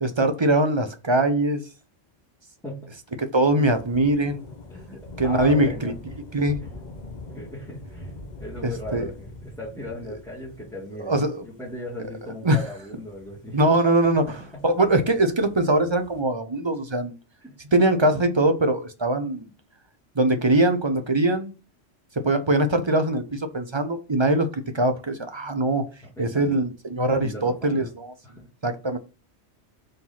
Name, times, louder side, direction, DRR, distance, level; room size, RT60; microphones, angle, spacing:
voice 1, 0.0-1.6 3.3-4.4 5.2-5.9 6.3-6.6 8.6-9.0 11.1-11.3 12.4-12.6 13.5-14.3 14.6-17.1 17.7-19.5 20.2-21.5 22.2-25.8 26.2-28.1 28.6-29.0, right 1 dB, 25° right, 0.7 m, -22 dB
sound 1, 3.4-16.2, left 2 dB, 35° left, 1.1 m, -43 dB
voice 2, 4.7-6.0 6.6-6.7 7.3-13.7 14.2-14.7 17.4-17.6 26.2-26.6 27.1-27.9 28.2-28.5, left 1 dB, 5° left, 2.0 m, -38 dB
4.7 x 3.9 x 5.6 m
omnidirectional pair, 1.3 m